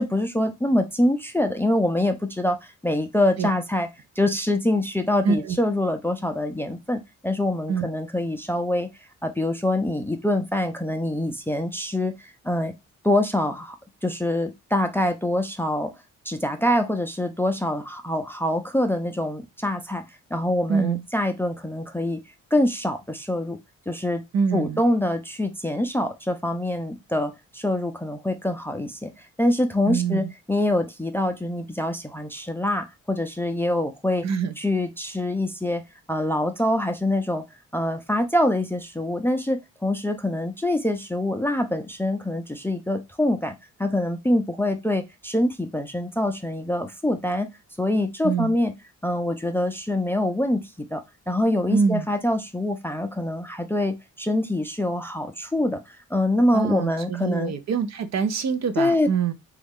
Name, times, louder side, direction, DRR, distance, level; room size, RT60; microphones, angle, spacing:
voice 1, 0.0-3.9 4.2-8.9 9.2-12.7 13.0-13.8 14.0-15.9 16.3-20.0 20.3-22.2 22.5-23.6 23.9-24.2 24.5-29.1 29.4-34.3 34.6-35.8 36.1-37.4 37.7-43.5 43.8-47.5 47.8-48.7 49.0-57.5 58.8-59.1, left 1 dB, 5° left, 0.4 m, -25 dB
voice 2, 5.2-5.6 7.7-7.9 20.7-21.0 24.3-24.8 29.9-30.3 34.2-34.5 48.2-48.6 51.7-52.1 56.5-59.3, right 6 dB, 55° right, 0.5 m, -24 dB
3.1 x 2.4 x 3.5 m
cardioid pair, 95°, 31 cm